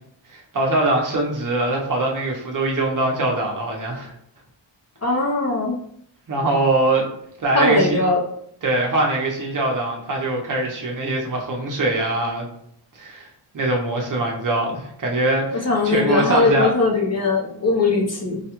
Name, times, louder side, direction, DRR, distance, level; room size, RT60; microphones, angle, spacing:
voice 1, 0.3-4.1 6.3-7.1 7.4-8.0 8.6-12.5 12.9-13.3 13.5-16.7, right 2 dB, 45° right, -1 dB, 0.9 m, -22 dB
voice 2, 5.0-5.7 7.5-8.2 15.6-18.4, left 3 dB, 35° left, -1 dB, 0.7 m, -20 dB
4.8 x 2.3 x 3.0 m, 0.71 s
wide cardioid pair, 120°, 44 cm